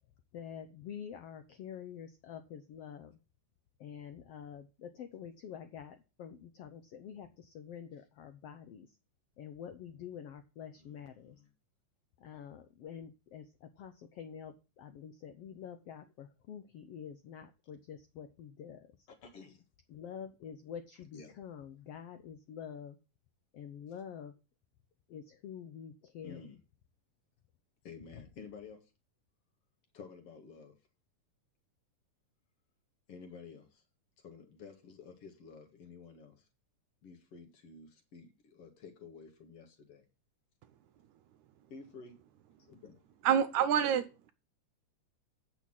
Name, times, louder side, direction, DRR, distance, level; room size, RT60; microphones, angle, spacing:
voice 1, 0.3-3.2 3.8-9.0 9.4-11.4 12.2-19.0 19.9-23.0 23.5-24.3 25.1-26.6 28.1-28.2, left 8 dB, 75° left, 1.4 m, -47 dB
voice 2, 10.8-11.4 19.2-19.6 21.1-21.3 26.2-26.5 27.8-28.8 29.9-30.7 33.1-33.7 34.2-36.3 37.0-40.0 41.7-42.2 42.6-43.0, left 5 dB, 50° left, 2.5 m, -51 dB
voice 3, 43.2-44.0, right 9 dB, 75° right, 2.0 m, -26 dB
8.5 x 6.3 x 7.3 m
omnidirectional pair, 3.7 m